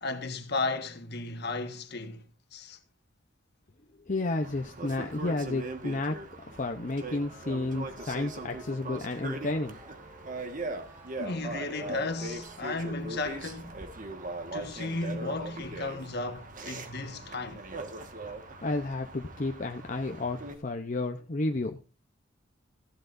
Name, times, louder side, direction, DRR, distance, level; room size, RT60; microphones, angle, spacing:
voice 1, 0.0-2.2 2.5-2.8 11.2-13.8 14.5-17.6, left 3 dB, 60° left, 1.5 m, -34 dB
voice 2, 4.1-9.8 18.6-21.8, left 2 dB, 40° left, 0.8 m, -32 dB
sound 1, 4.4-20.6, right 2 dB, 45° right, 1.7 m, -40 dB
sound 2, 7.2-12.6, equal, 15° right, 2.1 m, -53 dB
16.0 x 11.5 x 2.6 m
head